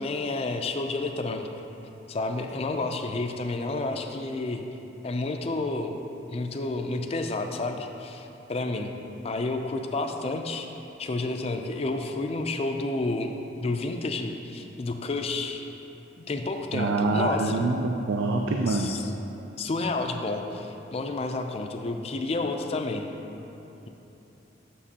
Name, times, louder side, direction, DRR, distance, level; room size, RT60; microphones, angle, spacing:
voice 1, 0.0-1.5 2.1-4.6 5.0-5.9 6.3-8.9 9.2-10.7 11.0-15.6 16.2-17.6 18.7-19.1 19.6-23.1, left 2 dB, 35° left, 4 dB, 0.4 m, -30 dB
voice 2, 16.7-18.9, right 3 dB, 90° right, 2 dB, 0.4 m, -25 dB
7.2 x 6.8 x 2.8 m, 3.0 s
head